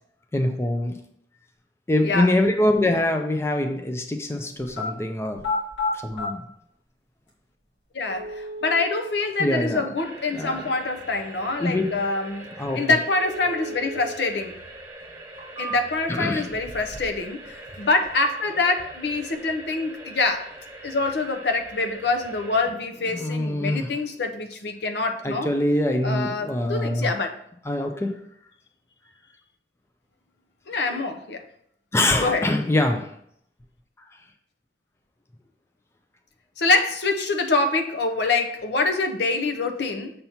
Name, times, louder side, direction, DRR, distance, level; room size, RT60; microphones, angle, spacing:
voice 1, 0.3-1.0 1.9-5.4 5.9-6.5 9.4-9.9 10.3-10.7 11.6-12.0 12.6-12.8 16.1-16.5 23.1-24.0 25.2-27.1 27.7-28.2 30.9-31.0 31.9-33.1 34.0-34.1, left 1 dB, 15° left, 0.5 m, -24 dB
sound 1, 4.6-4.9 5.3-6.3 7.3-7.4 8.1-9.1 13.1-14.1 14.5-14.6 15.2-16.1 16.5-17.2 17.5-18.1, left 2 dB, 90° left, 2.0 m, -32 dB
voice 2, 7.9-14.6 15.6-20.5 20.8-25.5 26.0-27.4 30.7-31.4 32.2-32.5 36.6-40.1, left 3 dB, 75° left, 0.7 m, -25 dB
sound 2, 9.9-22.7, right 1 dB, 15° right, 1.3 m, -43 dB
6.7 x 2.9 x 5.6 m
head